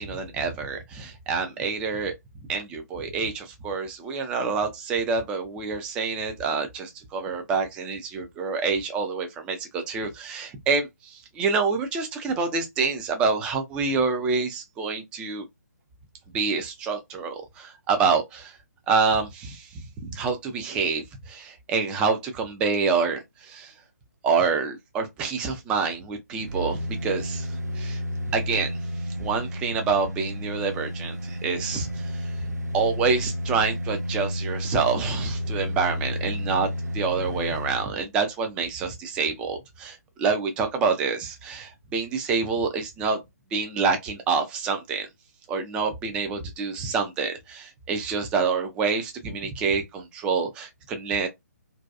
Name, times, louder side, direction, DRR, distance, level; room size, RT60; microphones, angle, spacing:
voice 1, 0.0-2.1 2.5-15.5 16.3-18.6 18.9-23.7 24.2-28.0 28.3-28.7 29.2-32.5 32.7-36.7 36.9-43.2 43.5-45.1 45.5-51.3, right 5 dB, 10° right, 0.3 m, -27 dB
sound 1, 26.3-37.9 38.3-38.4, equal, 75° right, 0.6 m, -31 dB
2.6 x 2.2 x 2.3 m
figure-of-eight pair, 135°, 9 cm